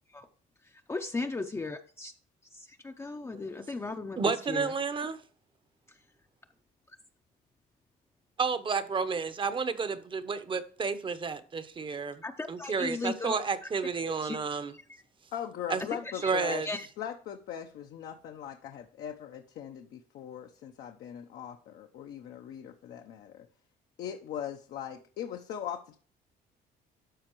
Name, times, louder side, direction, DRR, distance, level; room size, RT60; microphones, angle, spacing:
voice 1, 0.6-2.1 2.5-4.2 4.5-4.7 6.9-7.0 12.2-13.4 14.1-14.4 14.9-15.0 16.0-16.9, left 3 dB, 15° left, 0.6 m, -37 dB
voice 2, 4.2-5.2 8.4-12.2 12.5-14.7 15.7-15.8 16.2-16.7, right 5 dB, 30° right, 0.8 m, -31 dB
voice 3, 15.3-16.6 17.0-23.4 24.0-26.0, left 9 dB, 70° left, 0.8 m, -40 dB
12.5 x 4.4 x 3.0 m
cardioid pair, 110°, 17 cm